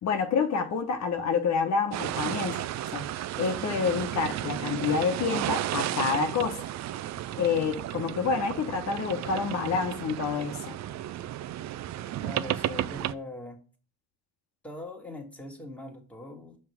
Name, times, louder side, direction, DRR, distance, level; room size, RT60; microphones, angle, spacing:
voice 1, 0.0-2.6 2.9-3.1 3.4-6.6 7.4-10.7, left 5 dB, 65° left, 1.0 m, -28 dB
sound 1, 1.9-13.1, right 13 dB, 65° right, 0.4 m, -33 dB
voice 2, 12.2-13.6 14.6-16.6, left 1 dB, 5° left, 1.8 m, -41 dB
5.7 x 3.3 x 5.7 m
cardioid pair, 90°, 30 cm